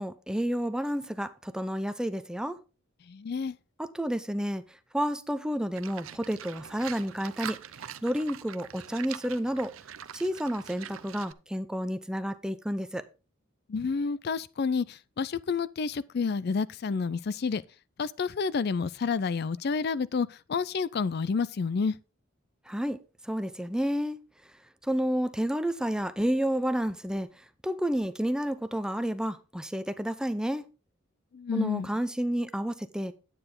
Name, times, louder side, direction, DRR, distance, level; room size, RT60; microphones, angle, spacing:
voice 1, 0.0-2.6 3.8-7.6 8.0-9.7 10.1-13.0 22.7-23.0 23.2-24.2 24.8-30.6 31.5-33.1, equal, 5° right, 0.6 m, -30 dB
voice 2, 3.1-3.5 13.7-17.6 18.0-21.9 31.3-31.9, left 5 dB, 50° left, 0.4 m, -29 dB
Livestock farm animals working animals, 5.7-11.3, right 9 dB, 85° right, 0.6 m, -43 dB
10.0 x 9.0 x 3.7 m
head